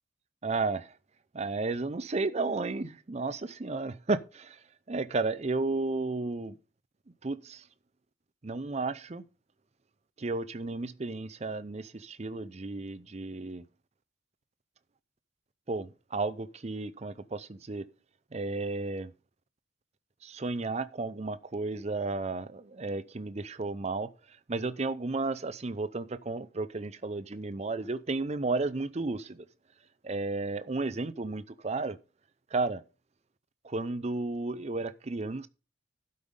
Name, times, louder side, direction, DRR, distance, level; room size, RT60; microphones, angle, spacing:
voice 1, 0.4-0.9 1.3-4.6 4.9-6.6 7.2-7.6 8.4-9.2 10.2-13.6 15.7-17.9 18.3-19.1 20.2-24.1 24.5-29.5 30.0-32.0 32.5-32.8 33.6-35.5, right 3 dB, 35° right, 0.6 m, -33 dB
12.0 x 5.4 x 5.1 m
head